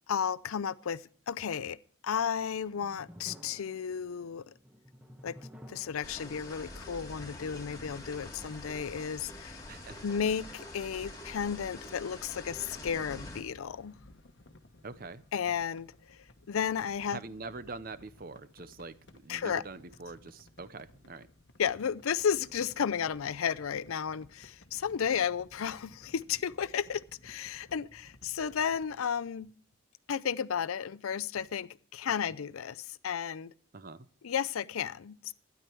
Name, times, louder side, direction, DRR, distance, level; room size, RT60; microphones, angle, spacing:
voice 1, 0.1-1.8 2.0-4.5 5.2-5.4 5.7-9.6 10.0-14.0 15.3-17.2 19.3-19.6 21.6-29.5 30.1-33.5 34.2-35.3, left 7 dB, 85° left, 0.5 m, -33 dB
sound 1, 2.5-9.5, equal, 5° right, 1.0 m, -55 dB
sound 2, 6.0-13.4, left 1 dB, 15° left, 1.8 m, -46 dB
voice 2, 9.7-10.0 14.8-15.2 17.1-21.3 33.7-34.1, right 3 dB, 45° right, 0.6 m, -44 dB
sound 3, 12.3-29.0, left 1 dB, 55° left, 1.0 m, -58 dB
12.5 x 10.0 x 4.5 m
head